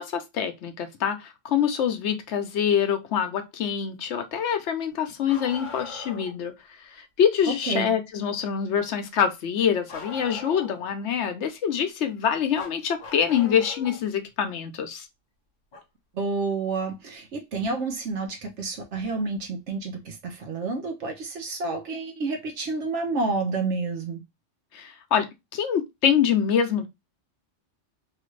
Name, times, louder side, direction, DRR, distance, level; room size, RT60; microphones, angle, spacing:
voice 1, 0.0-6.5 6.9-15.1 24.7-25.3 25.5-26.9, left 8 dB, 70° left, 0.9 m, -25 dB
Bark, 5.3-6.4 9.9-10.9 12.5-14.0 15.7-15.8 17.7-17.8 18.9-19.0, left 3 dB, 45° left, 0.8 m, -40 dB
voice 2, 16.1-24.2, right 3 dB, 70° right, 1.1 m, -29 dB
3.0 x 2.5 x 3.1 m
omnidirectional pair, 1.3 m